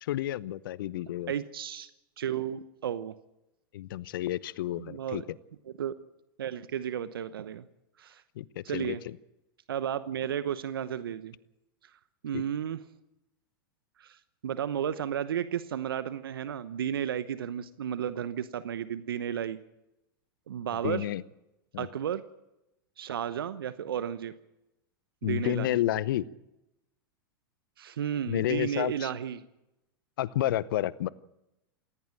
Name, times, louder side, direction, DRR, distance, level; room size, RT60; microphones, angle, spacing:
voice 1, 0.0-1.3 3.7-5.2 8.4-9.0 12.3-12.4 20.8-21.2 21.7-21.9 25.2-26.2 28.3-29.1 30.2-31.1, left 13 dB, 65° left, 20 dB, 0.8 m, -30 dB
voice 2, 1.3-1.9 2.2-3.1 4.8-5.2 5.7-5.9 6.4-7.7 8.0-8.2 8.6-9.0 9.7-11.3 11.8-11.9 12.2-12.8 14.0-19.6 20.5-21.1 21.8-22.2 23.0-24.4 25.2-25.7 27.8-29.4, right 9 dB, 75° right, 14 dB, 0.9 m, -33 dB
18.5 x 16.0 x 8.9 m, 0.90 s
hypercardioid pair, 100°, 12 cm